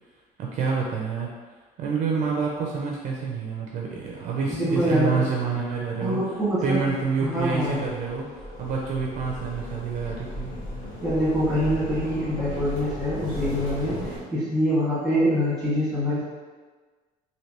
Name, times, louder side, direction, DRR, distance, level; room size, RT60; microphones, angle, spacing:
voice 1, 0.4-1.3 1.8-6.2 6.6-10.5, right 5 dB, 50° right, -2 dB, 0.4 m, -28 dB
voice 2, 4.5-5.2 6.0-6.8 7.2-7.8 11.0-13.9 14.3-16.2, equal, ahead, -10 dB, 1.4 m, -24 dB
sound 1, 6.6-14.2, left 1 dB, 60° left, 0.9 m, -36 dB
3.2 x 2.7 x 2.9 m, 1.4 s
cardioid pair, 160°, 16 cm